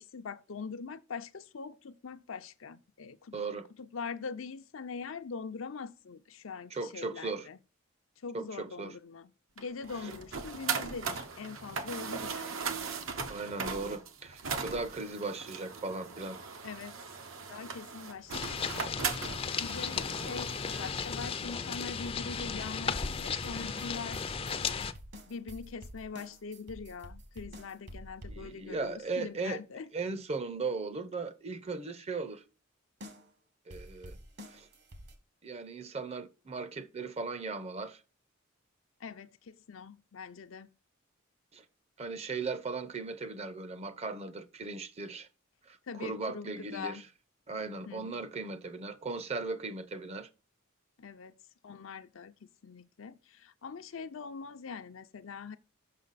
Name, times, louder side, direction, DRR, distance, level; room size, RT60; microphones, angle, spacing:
voice 1, 0.0-3.3 3.8-7.6 8.2-9.3 9.6-12.6 16.6-17.0 17.5-18.8 19.6-20.5 20.8-24.8 25.3-29.9 39.0-40.7 45.9-47.0 47.9-48.2 51.0-51.4 51.6-55.6, left 5 dB, 75° left, 0.6 m, -43 dB
voice 2, 3.3-3.7 6.7-7.5 8.3-8.9 10.0-10.1 13.3-16.4 28.3-29.6 29.9-32.4 33.7-34.2 34.5-34.7 35.4-38.0 41.5-41.6 42.0-45.3 45.7-47.0 47.5-50.3, right 3 dB, 30° right, 0.6 m, -37 dB
sound 1, 9.6-21.1, right 5 dB, 75° right, 0.9 m, -39 dB
sound 2, 18.3-24.9, left 6 dB, 30° left, 0.4 m, -35 dB
sound 3, 23.1-28.8 33.0-33.3 33.7-35.2, equal, 55° right, 1.4 m, -48 dB
6.5 x 5.9 x 4.0 m
head